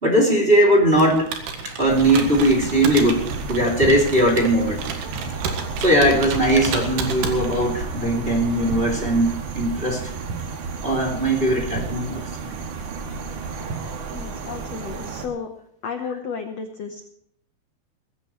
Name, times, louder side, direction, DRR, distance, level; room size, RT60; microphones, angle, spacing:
voice 1, 0.0-1.3 1.6-4.8 5.8-10.0 10.8-12.6, right 1 dB, 15° right, -1 dB, 2.6 m, -19 dB
Computer keyboard, 0.9-7.8, right 5 dB, 85° right, 3.8 m, -31 dB
sound 1, 1.9-15.3, right 4 dB, 60° right, 2.9 m, -32 dB
voice 2, 14.1-15.5 15.8-17.1, left 6 dB, 85° left, 5 dB, 1.4 m, -32 dB
20.0 x 15.5 x 3.2 m, 0.70 s
omnidirectional pair, 4.7 m